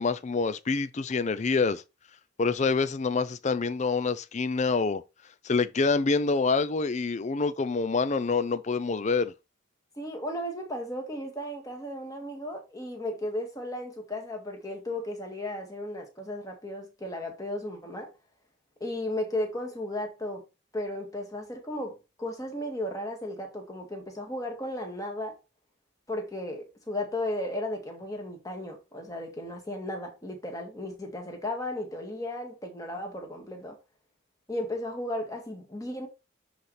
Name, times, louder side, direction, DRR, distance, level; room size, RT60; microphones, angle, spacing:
voice 1, 0.0-1.8 2.4-5.0 5.4-9.3, left 4 dB, 35° left, 0.4 m, -26 dB
voice 2, 10.0-18.1 18.8-20.4 20.7-25.4 26.1-33.8 34.5-36.1, left 1 dB, 15° left, 1.9 m, -35 dB
10.0 x 4.1 x 3.3 m
head